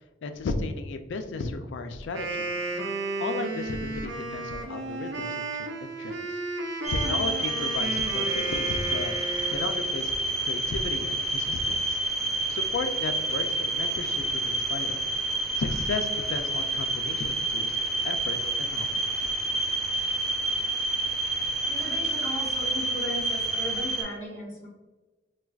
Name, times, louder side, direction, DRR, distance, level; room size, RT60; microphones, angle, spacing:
voice 1, 0.2-2.5 3.2-6.4 6.9-9.1 9.5-10.1 10.4-12.0 12.5-15.1 15.6-17.8 18.0-19.3, left 3 dB, 80° left, 8 dB, 0.3 m, -34 dB
Wind instrument woodwind instrument, 2.0-10.1, right 3 dB, 85° right, 0.5 m, -33 dB
sound 1, 6.8-24.0, right 2 dB, ahead, 0.4 m, -29 dB
voice 2, 21.7-24.7, equal, 15° left, -5 dB, 1.2 m, -36 dB
4.4 x 2.3 x 2.3 m, 1.2 s
head